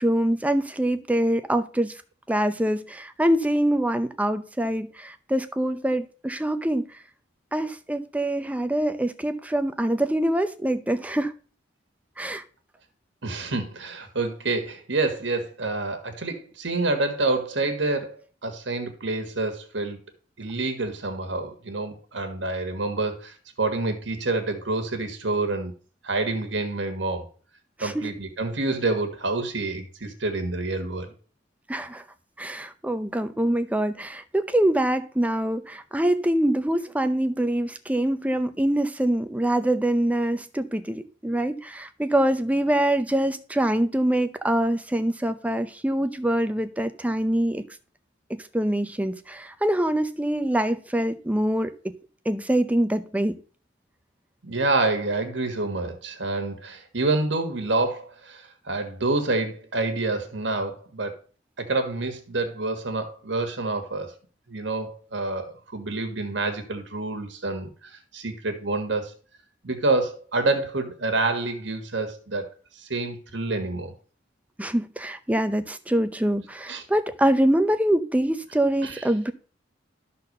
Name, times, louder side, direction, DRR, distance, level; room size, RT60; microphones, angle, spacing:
voice 1, 0.0-1.9 2.3-6.8 7.5-11.3 12.2-12.4 27.8-28.1 31.7-32.0 32.4-47.6 48.5-51.9 52.3-53.4 74.6-79.3, right 1 dB, 5° right, 0.5 m, -24 dB
voice 2, 13.2-20.0 20.4-25.7 26.0-27.3 27.8-31.1 54.4-61.1 61.6-64.1 64.5-69.1 69.6-72.5 72.8-73.9 76.7-76.8 78.8-79.1, right 2 dB, 65° right, 1.6 m, -27 dB
12.5 x 4.1 x 6.6 m
head